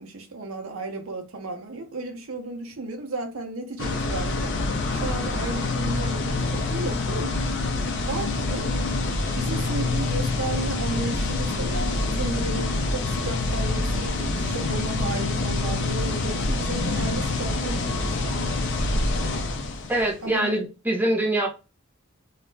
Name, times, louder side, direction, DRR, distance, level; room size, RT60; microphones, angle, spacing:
voice 1, 0.0-4.5 4.9-7.4 8.1-8.7 9.3-18.6 20.2-20.6, right 2 dB, 70° right, 0.7 m, -34 dB
sound 1, 3.8-20.1, left 2 dB, 55° left, 0.5 m, -26 dB
voice 2, 19.9-21.5, right 1 dB, 10° right, 0.5 m, -24 dB
2.4 x 2.0 x 3.1 m
head